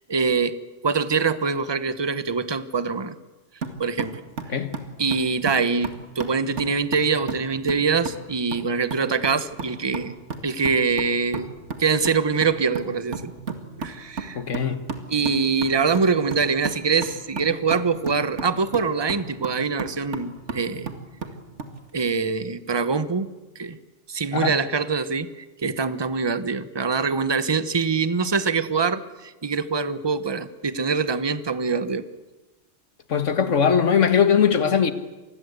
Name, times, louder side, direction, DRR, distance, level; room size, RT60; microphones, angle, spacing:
voice 1, 0.1-0.5 0.8-3.2 3.8-4.2 5.0-10.1 10.4-11.5 11.8-13.3 13.8-14.4 15.1-20.9 21.9-23.8 24.1-32.1, right 5 dB, 25° right, 0.9 m, -24 dB
sound 1, 3.6-21.8, right 4 dB, 70° right, 2.3 m, -35 dB
voice 2, 4.5-4.8 14.4-14.9 24.3-24.6 33.1-34.9, left 7 dB, 80° left, 1.8 m, -20 dB
26.5 x 20.5 x 8.1 m
omnidirectional pair, 1.2 m